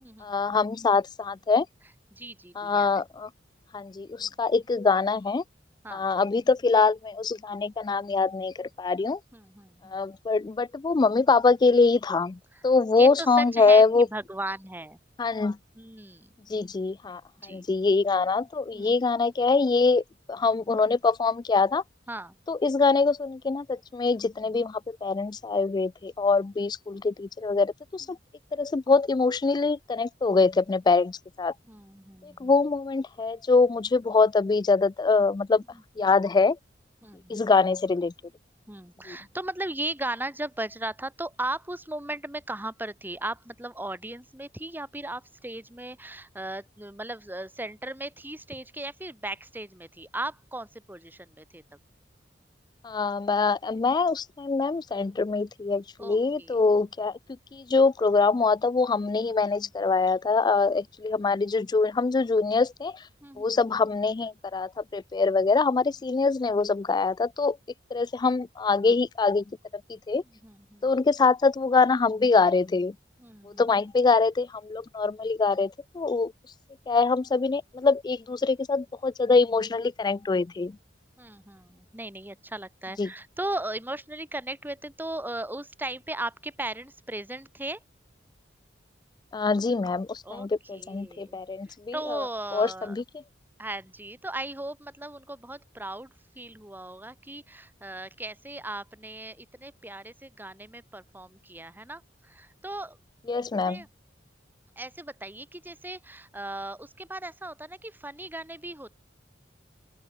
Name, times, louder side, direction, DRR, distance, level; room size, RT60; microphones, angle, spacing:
voice 1, 0.2-1.7 2.6-3.3 3.7-5.4 5.9-9.2 9.8-14.1 15.2-15.6 16.5-20.0 20.3-21.8 22.5-28.2 28.5-31.5 32.2-35.6 36.0-36.6 37.3-38.1 39.1-39.2 52.8-57.1 57.5-63.0 63.4-67.6 67.9-69.4 69.9-70.2 70.8-72.9 73.4-76.3 76.9-80.8 83.0-83.1 89.3-92.3 92.5-93.0 103.3-103.8, left 4 dB, 25° left, 0.3 m, -24 dB
voice 2, 2.1-2.9 4.2-4.4 5.8-6.1 9.3-10.0 13.0-15.0 15.8-16.3 17.4-17.7 18.7-18.9 22.1-22.4 31.7-32.5 37.0-37.5 38.7-51.6 56.0-56.6 63.2-63.6 70.4-70.9 73.2-73.6 81.2-87.8 90.2-90.5 90.7-91.4 91.9-93.0 93.6-96.1 96.4-103.0 103.4-103.9 104.8-109.0, right 1 dB, 10° right, 3.3 m, -37 dB
open air
head